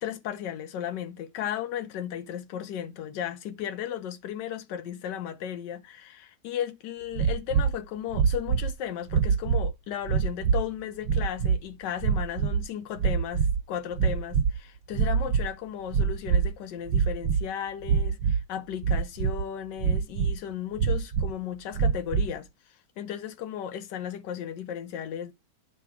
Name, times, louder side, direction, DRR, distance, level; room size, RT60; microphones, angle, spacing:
voice 1, 0.0-25.3, left 10 dB, 85° left, 1.3 m, -35 dB
sound 1, 7.1-7.8 8.1-8.7 9.1-9.7 10.1-10.7 11.0-11.6 12.0-12.7 13.0-13.6 13.9-14.6 14.9-15.5 15.9-16.5 16.9-17.4 17.8-18.4 18.8-19.4 19.8-20.4 20.8-21.3 21.7-22.3, right 6 dB, 80° right, 1.3 m, -25 dB
10.0 x 3.4 x 4.6 m
omnidirectional pair, 1.9 m